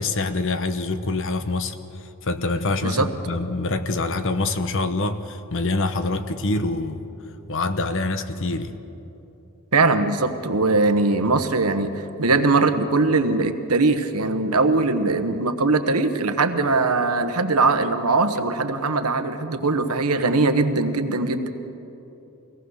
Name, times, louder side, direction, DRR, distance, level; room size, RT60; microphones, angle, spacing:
voice 1, 0.0-1.7 2.2-7.0 7.5-8.7, left 2 dB, 60° left, 10 dB, 1.1 m, -25 dB
voice 2, 9.7-21.5, right 3 dB, 80° right, 8 dB, 1.2 m, -21 dB
24.5 x 18.0 x 6.5 m, 3.0 s
head